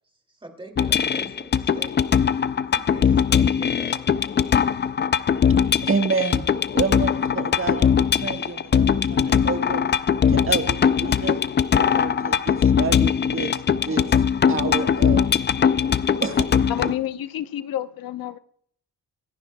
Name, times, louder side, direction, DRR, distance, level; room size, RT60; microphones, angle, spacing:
voice 1, 0.0-2.0 2.7-4.3, right 2 dB, 15° right, 2.4 m, -44 dB
sound 1, 0.8-16.9, left 7 dB, 30° left, 0.4 m, -21 dB
voice 2, 5.8-6.4 6.7-9.8 10.3-11.4 11.8-13.5 13.8-14.1 14.5-15.3 16.2-16.9, right 4 dB, 40° right, 1.4 m, -28 dB
voice 3, 16.7-18.4, left 12 dB, 85° left, 0.8 m, -29 dB
26.0 x 10.5 x 2.2 m
cardioid pair, 115°, 34 cm